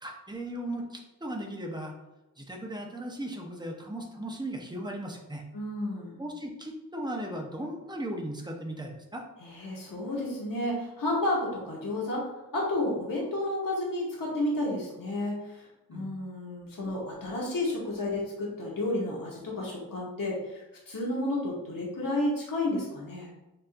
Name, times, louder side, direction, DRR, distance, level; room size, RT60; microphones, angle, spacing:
voice 1, 0.0-2.0 2.4-5.4 6.2-9.3 15.9-16.2, right 1 dB, 10° right, 1 dB, 0.7 m, -37 dB
voice 2, 5.5-6.2 9.4-12.2 12.5-23.3, left 1 dB, 65° left, -4 dB, 1.2 m, -31 dB
6.7 x 2.6 x 2.5 m, 0.99 s
wide cardioid pair, 100°, 36 cm